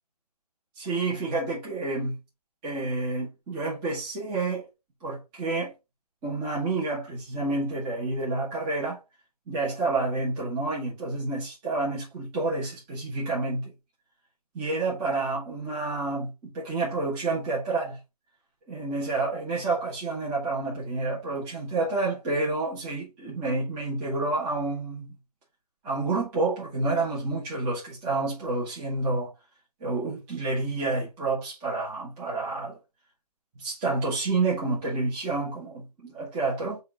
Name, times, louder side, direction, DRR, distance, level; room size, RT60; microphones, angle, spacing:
voice 1, 0.8-2.2 2.6-4.7 5.0-5.7 6.2-9.0 9.5-13.7 14.5-18.0 18.7-25.1 25.8-29.3 29.8-32.8 33.6-36.8, right 3 dB, 15° right, 1.2 m, -29 dB
6.4 x 2.6 x 2.9 m
hypercardioid pair, 160°, 20 cm